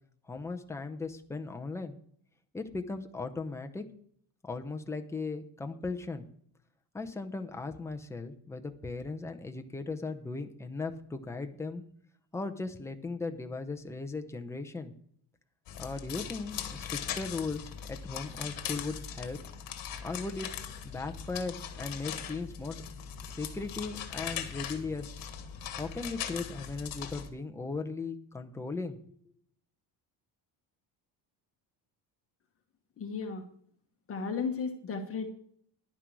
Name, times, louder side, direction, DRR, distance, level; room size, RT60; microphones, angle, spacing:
voice 1, 0.3-2.0 2.5-3.9 4.4-6.2 6.9-11.8 12.3-14.9 15.8-19.4 20.0-20.5 20.8-22.8 23.2-25.1 25.8-29.0, left 3 dB, 5° left, 5 dB, 0.7 m, -37 dB
sound 1, 15.7-27.3, left 8 dB, 50° left, 1.7 m, -40 dB
voice 2, 33.0-33.4 34.1-35.3, left 5 dB, 30° left, 3 dB, 1.3 m, -34 dB
11.0 x 10.0 x 4.6 m, 0.63 s
cardioid pair, 170°, 44 cm